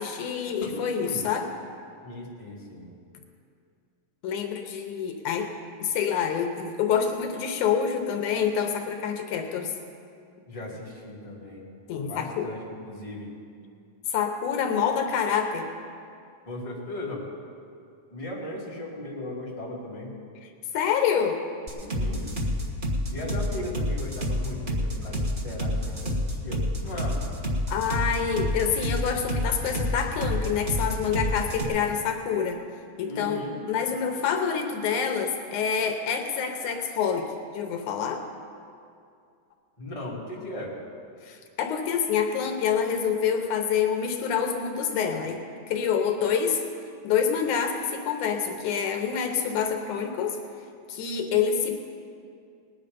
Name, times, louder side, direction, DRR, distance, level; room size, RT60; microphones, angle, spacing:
voice 1, 0.0-1.5 4.2-5.5 5.8-9.8 11.9-12.5 14.1-15.7 20.7-21.4 27.7-32.6 33.0-33.4 33.7-37.3 37.5-38.2 41.2-45.4 45.7-46.6 47.0-50.4 50.9-51.7, left 7 dB, 80° left, 4 dB, 2.4 m, -27 dB
voice 2, 2.0-2.9 10.5-11.7 12.0-13.3 16.5-17.2 18.1-20.1 21.7-22.2 23.1-27.2 33.0-33.6 39.8-40.7, left 1 dB, 10° left, -6 dB, 2.2 m, -37 dB
sound 1, 21.7-31.6, equal, 60° right, 0.5 m, -28 dB
19.5 x 9.8 x 5.2 m, 2.4 s
omnidirectional pair, 3.5 m